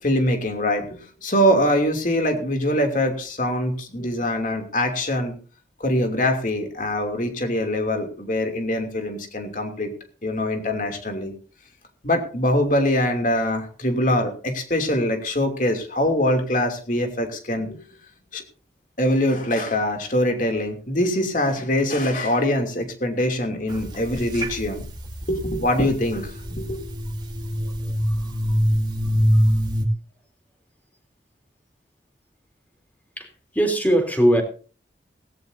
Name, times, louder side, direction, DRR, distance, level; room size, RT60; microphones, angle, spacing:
voice 1, 0.0-5.3 5.8-9.9 10.2-11.3 12.0-17.8 18.3-18.4 19.0-24.8 25.3-26.8, left 1 dB, 45° left, 4 dB, 2.8 m, -23 dB
sound 1, 23.7-29.8, equal, 25° right, 2.2 m, -24 dB
voice 2, 28.1-28.6 33.2-34.4, right 1 dB, 10° left, 4 dB, 3.3 m, -21 dB
17.5 x 16.5 x 2.7 m, 0.38 s
head